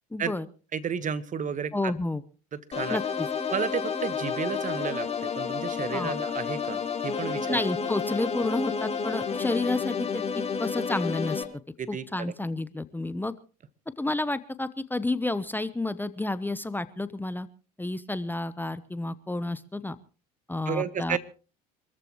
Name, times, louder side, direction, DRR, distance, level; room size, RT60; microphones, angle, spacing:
voice 1, 0.1-0.4 1.7-2.2 2.9-3.3 5.9-6.1 7.5-11.4 11.9-13.3 14.0-17.5 17.8-20.0 20.5-21.2, left 2 dB, 10° left, 14 dB, 0.9 m, -30 dB
voice 2, 0.7-1.9 2.5-3.0 3.5-7.6 11.8-12.3 20.6-21.2, right 7 dB, 40° right, 14 dB, 1.4 m, -32 dB
sound 1, 2.7-11.4, left 6 dB, 30° left, 3.4 m, -30 dB
26.5 x 14.0 x 3.1 m, 0.37 s
hypercardioid pair, 70°, 21 cm